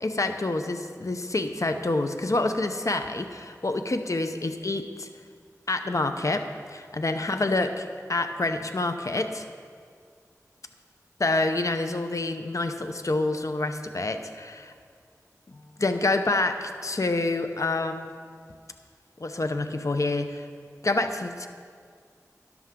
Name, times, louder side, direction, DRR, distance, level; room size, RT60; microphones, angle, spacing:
voice 1, 0.0-5.1 5.7-9.5 11.2-14.7 15.5-18.1 19.2-20.4 20.8-21.5, left 2 dB, 60° left, 7 dB, 0.7 m, -27 dB
13.0 x 10.5 x 3.8 m, 2.1 s
wide cardioid pair, 45°, 6 cm